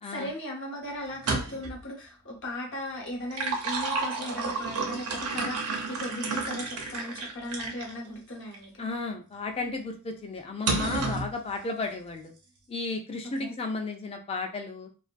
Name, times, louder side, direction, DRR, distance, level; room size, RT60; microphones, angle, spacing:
voice 1, 0.1-8.9 13.4-13.5, left 1 dB, 60° left, -1 dB, 0.9 m, -37 dB
sound 1, 1.1-1.8 3.1-7.9 8.5-8.7 10.7-11.3, right 3 dB, 85° right, 0.6 m, -31 dB
voice 2, 8.8-12.3 12.7-14.9, left 3 dB, 25° left, 4 dB, 0.3 m, -33 dB
2.4 x 2.2 x 2.4 m, 0.36 s
head